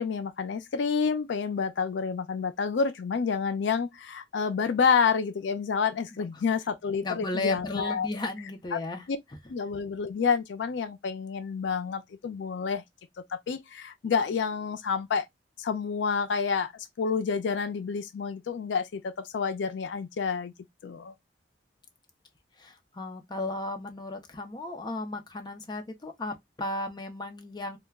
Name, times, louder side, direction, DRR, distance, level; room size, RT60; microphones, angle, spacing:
voice 1, 0.0-8.1 8.7-8.8 9.1-9.2 9.5-12.8 13.3-15.3 15.6-20.5 20.8-21.1, left 5 dB, 80° left, 0.4 m, -29 dB
voice 2, 7.0-9.0 22.6-27.8, left 2 dB, 25° left, 0.5 m, -35 dB
2.2 x 2.1 x 3.3 m
head